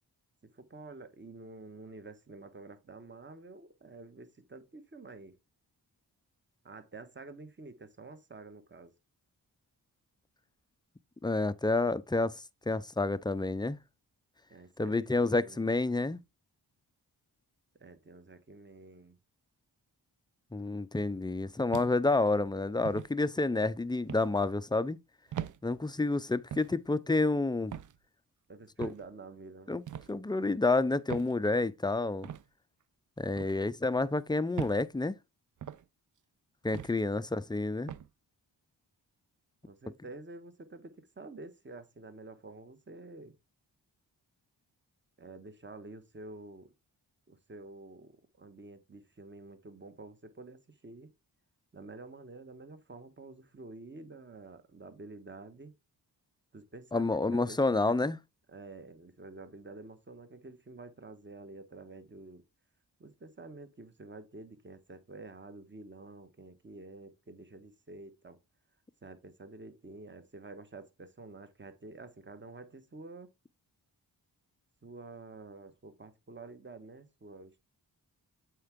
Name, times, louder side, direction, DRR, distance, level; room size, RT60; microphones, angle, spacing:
voice 1, 0.5-5.4 6.6-8.9 14.5-15.8 17.8-19.2 28.5-29.7 37.2-37.3 39.7-43.3 45.2-46.7 47.3-51.1 51.7-55.7 56.5-58.0 58.5-62.4 63.0-68.4 69.0-73.3 74.8-77.6, right 3 dB, 25° right, 1.2 m, -49 dB
voice 2, 11.2-13.8 14.8-16.2 20.5-25.0 25.6-27.8 28.8-28.9 29.7-29.8 30.1-32.3 33.2-35.2 36.6-37.9 56.9-58.2, left 2 dB, 10° left, 0.5 m, -29 dB
sound 1, 21.7-22.2 22.9-23.1 24.1-24.3 25.3-25.6 26.5-26.8 27.7-28.0 28.8-29.1 29.9-30.1 31.1-31.3 32.2-32.4 33.4-33.6 34.6-34.8 35.6-35.8 36.7-37.0 37.9-38.1, right 10 dB, 45° right, 0.5 m, -40 dB
7.7 x 4.6 x 3.6 m
cardioid pair, 50°, 43 cm